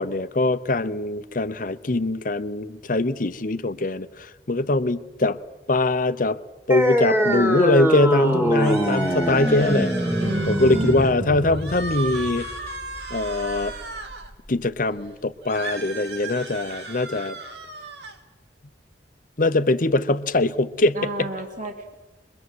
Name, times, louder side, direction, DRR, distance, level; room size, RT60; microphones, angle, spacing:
voice 1, 0.0-5.4 5.7-6.4 6.7-9.9 10.5-12.5 13.1-13.7 14.5-17.4 19.4-21.3, left 2 dB, 50° left, 0.9 m, -22 dB
sound 1, 6.7-13.7, equal, 15° right, 2.4 m, -24 dB
sound 2, 8.5-11.1 11.5-14.3 15.4-18.2, right 3 dB, 65° right, 2.3 m, -35 dB
voice 2, 10.2-11.5 20.9-21.9, right 1 dB, 45° right, 2.5 m, -31 dB
24.5 x 22.5 x 7.9 m
head